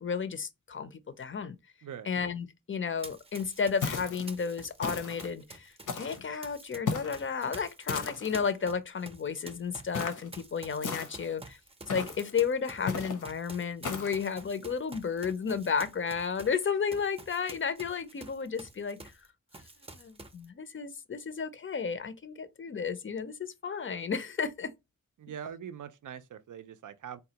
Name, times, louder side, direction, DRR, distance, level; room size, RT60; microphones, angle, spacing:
voice 1, 0.0-1.6 2.0-11.6 11.9-19.0 19.9-24.7, left 6 dB, 40° left, 0.4 m, -33 dB
voice 2, 1.8-2.1 25.2-27.2, right 8 dB, 80° right, 0.5 m, -43 dB
Run, 3.0-6.8 7.1-19.3 19.5-20.5, right 2 dB, 20° right, 0.6 m, -49 dB
sound 1, 3.8-4.3 4.8-5.3 5.9-6.3 6.9-7.2 7.9-8.4 9.9-10.3 10.8-11.3 11.9-12.3 12.9-13.2 13.8-14.2, left 5 dB, 85° left, 0.7 m, -35 dB
4.1 x 2.2 x 2.8 m
wide cardioid pair, 100°, 30 cm